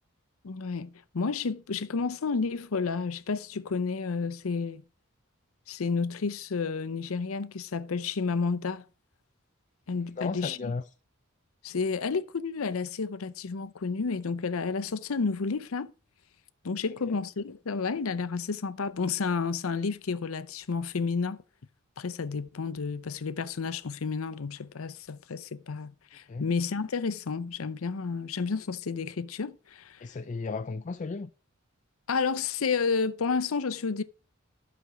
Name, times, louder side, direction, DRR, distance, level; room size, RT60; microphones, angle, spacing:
voice 1, 0.4-4.8 5.7-8.8 9.9-10.7 11.6-15.9 16.6-21.4 22.0-30.1 32.1-34.0, left 4 dB, 85° left, 0.6 m, -31 dB
voice 2, 10.2-10.8 17.1-17.2 26.3-26.5 30.0-31.3, left 4 dB, 35° left, 0.4 m, -34 dB
11.5 x 6.0 x 5.1 m
head